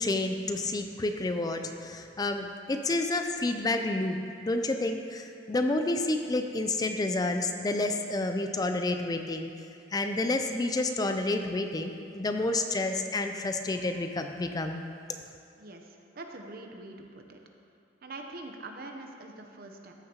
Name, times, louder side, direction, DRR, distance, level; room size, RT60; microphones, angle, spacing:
voice 1, 0.0-9.5 9.9-14.8, left 2 dB, 20° left, 6 dB, 0.4 m, -29 dB
voice 2, 15.6-17.4 18.0-19.9, right 2 dB, 55° right, 3 dB, 0.8 m, -44 dB
14.0 x 6.5 x 2.9 m, 2.4 s
head